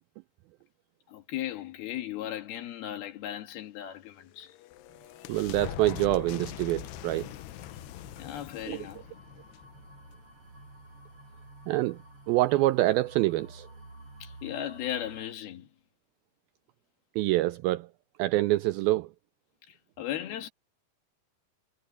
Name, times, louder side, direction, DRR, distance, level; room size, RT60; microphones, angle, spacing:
voice 1, 1.1-4.6 8.2-9.1 14.2-15.7 19.7-20.5, left 11 dB, 70° left, 3.4 m, -37 dB
sound 1, 4.1-10.5, left 15 dB, 85° left, 2.9 m, -43 dB
voice 2, 5.3-7.3 8.7-8.8 11.7-12.0 12.3-13.7 17.2-17.9 18.2-19.1, right 17 dB, 85° right, 2.1 m, -26 dB
sound 2, 5.8-15.2, right 2 dB, 35° right, 8.5 m, -52 dB
omnidirectional pair, 4.8 m